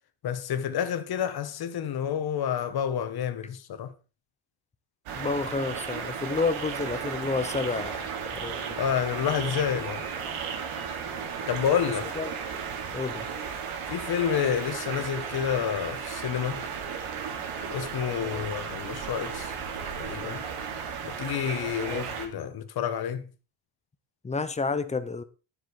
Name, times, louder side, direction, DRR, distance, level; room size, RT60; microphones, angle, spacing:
voice 1, 0.2-3.9 8.8-10.0 11.5-12.1 13.9-16.6 17.7-19.5 20.0-20.4 21.0-23.3, left 8 dB, 50° left, 1.4 m, -29 dB
sound 1, 5.1-22.3, right 6 dB, 90° right, 3.5 m, -35 dB
voice 2, 5.2-8.8 12.2-12.3 12.9-13.3 18.2-18.5 21.8-22.1 24.2-25.2, left 4 dB, 15° left, 0.8 m, -30 dB
12.0 x 7.4 x 4.9 m
cardioid pair, 170°, 49 cm